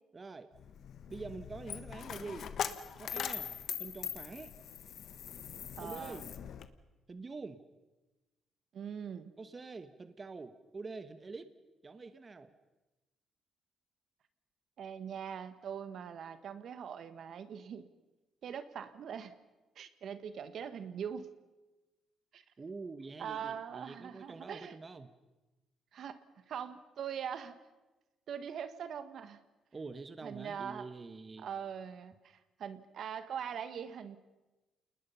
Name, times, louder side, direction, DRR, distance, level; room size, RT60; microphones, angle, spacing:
voice 1, 0.1-0.5 1.1-2.5 3.0-3.5 3.8-4.5 5.8-6.2 7.1-7.7 9.4-11.5 11.8-12.5 22.6-25.1 29.7-31.5, right 3 dB, 30° right, 11 dB, 1.2 m, -46 dB
Coin (dropping), 0.5-6.7, left 8 dB, 65° left, 1.3 m, -41 dB
voice 2, 5.8-6.2 8.7-9.3 14.8-17.9 18.4-19.3 19.7-21.3 22.3-22.4 23.2-24.8 25.9-26.2 26.5-27.5 28.3-29.4 30.2-30.9 31.4-34.2, right 8 dB, 65° right, 11 dB, 1.4 m, -42 dB
28.5 x 20.0 x 5.7 m, 1.1 s
cardioid pair, 90°, 0 cm